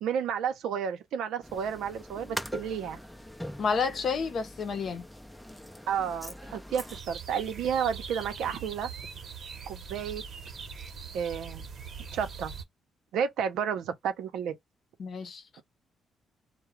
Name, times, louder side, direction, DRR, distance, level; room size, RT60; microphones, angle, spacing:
voice 1, 0.0-3.0 5.9-8.9 9.7-10.2 11.1-11.7 12.1-12.5 13.1-14.5, right 8 dB, 85° right, 0.7 m, -31 dB
sound 1, 1.4-7.0, equal, 5° left, 0.5 m, -42 dB
voice 2, 3.6-5.0 15.0-15.6, left 5 dB, 55° left, 0.7 m, -30 dB
sound 2, 6.9-12.6, right 5 dB, 50° right, 0.9 m, -42 dB
2.4 x 2.1 x 3.0 m
cardioid pair, 90°, 0 cm